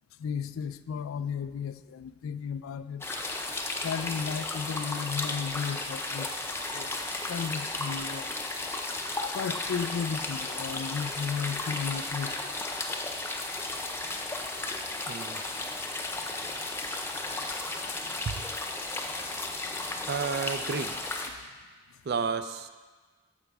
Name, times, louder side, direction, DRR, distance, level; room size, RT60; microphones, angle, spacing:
voice 1, 0.2-3.1 3.8-6.4 6.7-8.3 9.3-12.5 17.9-18.0, left 6 dB, 85° left, 14 dB, 0.3 m, -34 dB
sound 1, 3.0-21.3, left 2 dB, 10° left, 0.5 m, -34 dB
voice 2, 15.1-15.4 18.3-18.4 20.1-21.0 22.1-22.7, right 5 dB, 50° right, 11 dB, 0.4 m, -31 dB
14.0 x 5.0 x 3.4 m, 1.4 s
head